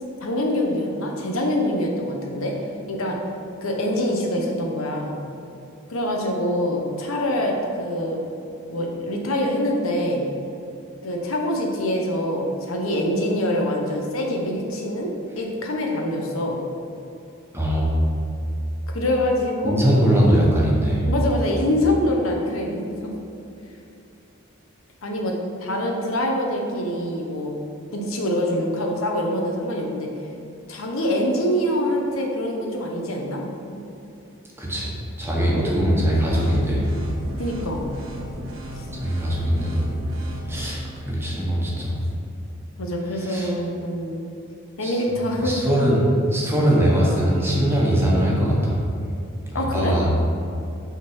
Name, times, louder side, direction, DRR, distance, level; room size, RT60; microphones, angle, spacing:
voice 1, 0.2-2.6 2.9-3.2 3.6-5.1 5.9-8.2 8.7-10.3 11.0-16.6 18.9-19.8 21.1-23.1 25.0-27.6 27.9-30.1 30.7-33.4 33.7-33.8 37.4-37.8 38.7-38.9 42.8-44.2 44.8-45.6 46.6-46.7 49.5-50.0, left 1 dB, 90° left, 1 dB, 1.0 m, -25 dB
voice 2, 17.5-17.9 19.6-21.1 34.6-34.9 35.2-36.9 39.0-39.9 40.5-42.0 43.2-43.5 44.8-44.9 45.3-46.0 46.3-48.8 49.5-50.1, equal, 10° right, -4 dB, 1.2 m, -21 dB
sound 1, 36.3-40.7, equal, 75° right, 0.9 m, -35 dB
5.8 x 3.8 x 6.1 m, 2.7 s
head